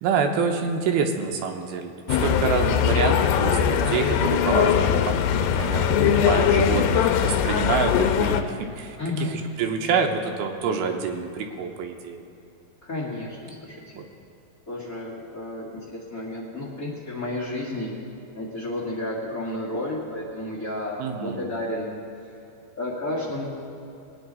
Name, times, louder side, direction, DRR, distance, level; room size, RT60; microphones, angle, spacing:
voice 1, 0.0-1.9 2.2-9.3 9.6-12.2 13.9-14.0 21.0-21.5, right 5 dB, 75° right, 3 dB, 2.6 m, -27 dB
sound 1, 2.1-8.4, left 8 dB, 85° left, 2.7 m, -21 dB
voice 2, 9.0-9.3 12.8-14.0 14.7-17.9 18.3-22.0 22.7-23.4, left 1 dB, 40° left, -6 dB, 1.2 m, -32 dB
21.5 x 9.6 x 4.0 m, 2.9 s
omnidirectional pair, 4.8 m